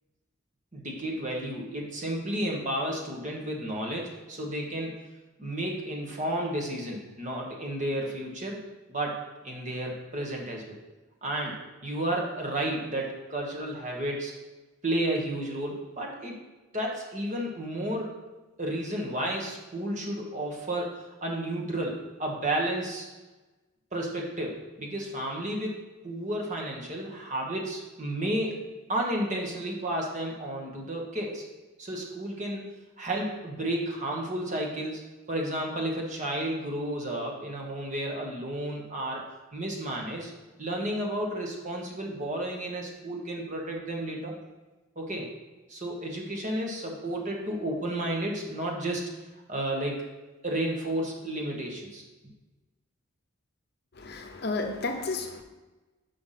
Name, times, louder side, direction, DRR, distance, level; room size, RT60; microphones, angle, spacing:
voice 1, 0.7-5.0 5.4-8.6 8.9-9.2 9.4-10.8 11.2-14.4 14.8-16.4 16.7-18.1 18.6-20.9 21.2-23.1 23.9-28.6 28.9-31.4 31.8-32.6 33.0-39.2 39.5-40.3 40.6-44.3 44.9-45.3 45.7-49.0 49.5-50.1 50.4-52.0, right 1 dB, 35° right, 0 dB, 1.3 m, -32 dB
voice 2, 54.0-55.4, left 3 dB, 50° left, 5 dB, 0.7 m, -32 dB
5.8 x 5.2 x 5.8 m, 1.2 s
head